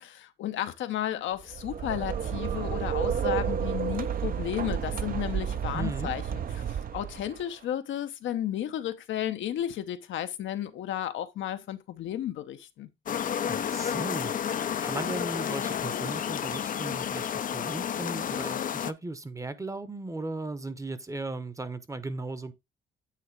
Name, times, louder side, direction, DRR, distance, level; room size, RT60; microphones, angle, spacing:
voice 1, 0.0-12.9, left 11 dB, 75° left, 0.8 m, -33 dB
sound 1, 1.4-7.4, right 8 dB, 45° right, 0.6 m, -31 dB
voice 2, 5.7-6.1 13.5-22.5, right 2 dB, 15° right, 0.8 m, -37 dB
sound 2, 13.1-18.9, left 9 dB, 45° left, 0.5 m, -31 dB
8.5 x 2.9 x 4.6 m
cardioid pair, 90°, 20 cm